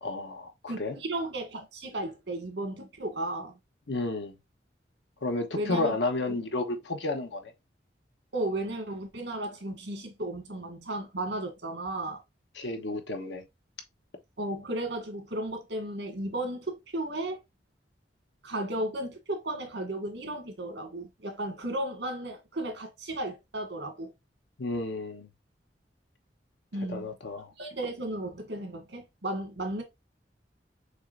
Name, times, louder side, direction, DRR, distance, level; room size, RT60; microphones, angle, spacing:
voice 1, 0.0-1.0 3.9-4.3 5.2-7.5 12.5-13.4 24.6-25.3 26.9-27.5, left 2 dB, 90° left, 1.1 m, -31 dB
voice 2, 0.7-3.6 5.6-5.9 8.3-12.2 14.4-17.4 18.4-24.1 26.7-27.1 27.6-29.8, right 1 dB, 75° right, 1.8 m, -34 dB
6.4 x 3.1 x 2.6 m
head